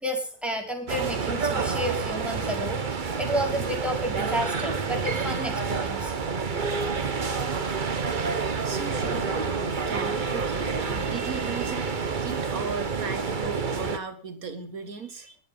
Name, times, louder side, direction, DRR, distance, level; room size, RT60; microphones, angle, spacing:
voice 1, 0.0-6.1, equal, ahead, 1 dB, 4.5 m, -31 dB
sound 1, 0.9-14.0, right 5 dB, 35° right, 1.1 m, -28 dB
voice 2, 8.6-11.8 12.2-15.4, right 4 dB, 80° right, 8 dB, 2.1 m, -37 dB
sound 2, 9.0-11.2, left 3 dB, 85° left, 3.1 m, -44 dB
21.0 x 7.9 x 5.3 m, 0.42 s
omnidirectional pair, 1.5 m